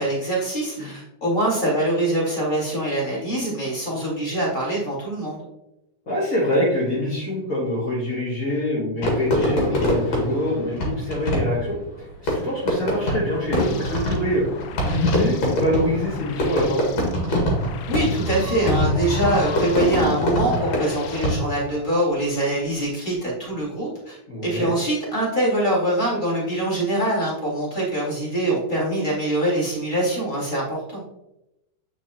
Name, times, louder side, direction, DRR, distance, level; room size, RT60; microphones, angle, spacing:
voice 1, 0.0-5.4 17.9-31.0, right 1 dB, 15° left, -6 dB, 2.3 m, -24 dB
voice 2, 6.0-16.8 24.3-24.7, left 1 dB, 35° left, -7 dB, 1.4 m, -25 dB
Fireworks, 9.0-21.7, equal, 55° left, 2.9 m, -24 dB
sound 1, 13.2-20.5, equal, 70° right, 0.3 m, -41 dB
sound 2, 13.6-21.4, left 7 dB, 85° left, 1.5 m, -40 dB
8.1 x 5.2 x 3.0 m, 0.87 s
omnidirectional pair, 3.6 m